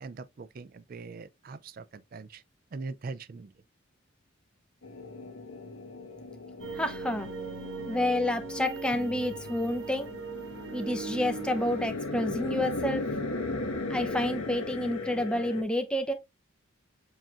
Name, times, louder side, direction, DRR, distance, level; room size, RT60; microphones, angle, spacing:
voice 1, 0.0-2.4 2.7-3.5, right 4 dB, 45° right, 0.3 m, -41 dB
sound 1, 4.8-15.6, left 2 dB, 75° left, 1.6 m, -37 dB
sound 2, 6.6-11.9, right 4 dB, 65° right, 0.9 m, -39 dB
voice 2, 6.7-7.3 7.9-10.1 10.7-13.0 13.9-16.1, left 1 dB, 5° left, 0.6 m, -29 dB
7.3 x 2.9 x 2.5 m
head